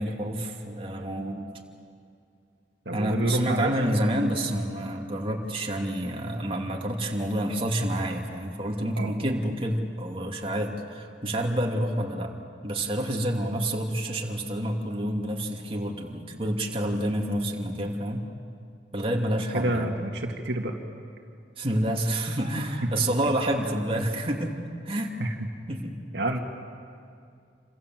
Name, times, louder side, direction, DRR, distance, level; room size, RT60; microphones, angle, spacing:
voice 1, 0.0-1.5 2.9-12.3 12.6-18.3 18.9-19.9 21.6-24.5 24.8-25.1 25.7-26.0, right 1 dB, 30° right, 0 dB, 2.8 m, -28 dB
voice 2, 2.9-3.8 9.0-9.1 19.5-20.8 22.8-22.9 25.2-25.5 26.1-26.4, right 1 dB, 70° right, 2 dB, 2.3 m, -28 dB
28.5 x 27.0 x 7.7 m, 2.4 s
head